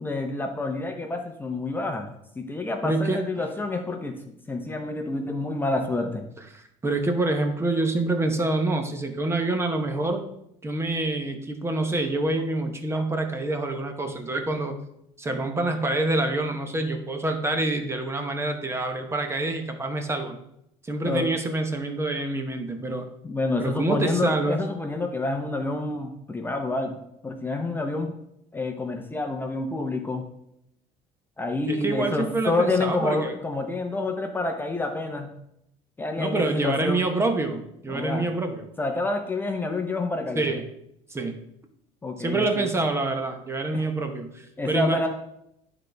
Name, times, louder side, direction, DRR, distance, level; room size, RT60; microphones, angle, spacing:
voice 1, 0.0-2.1 2.4-6.2 21.0-21.3 23.2-27.0 27.2-28.1 28.5-30.2 31.4-35.3 36.0-37.0 37.9-38.3 38.8-40.5 42.0-42.7 43.7-43.9 44.6-45.1, left 2 dB, 15° left, 4 dB, 0.7 m, -28 dB
voice 2, 2.8-3.2 6.5-10.2 10.6-14.7 15.2-20.4 20.8-23.1 23.6-24.6 31.7-33.3 36.2-38.7 40.4-40.6 41.1-41.4 42.2-45.1, right 2 dB, 20° right, 5 dB, 0.8 m, -26 dB
11.5 x 3.9 x 3.4 m, 0.78 s
cardioid pair, 115°, 14 cm